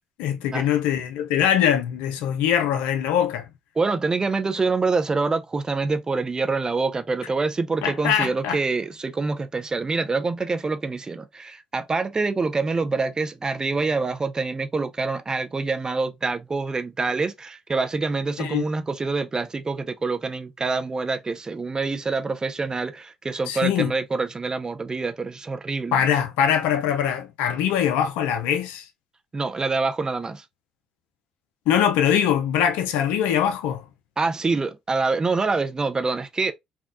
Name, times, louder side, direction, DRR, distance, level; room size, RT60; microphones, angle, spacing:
voice 1, 0.2-3.5 7.8-8.6 18.4-18.6 23.5-23.9 25.9-28.9 31.7-33.9, left 9 dB, 80° left, 0.5 m, -22 dB
voice 2, 3.8-26.0 29.3-30.4 34.2-36.5, right 3 dB, 30° right, 0.4 m, -26 dB
3.5 x 2.2 x 2.5 m
supercardioid pair, 60°, 3 cm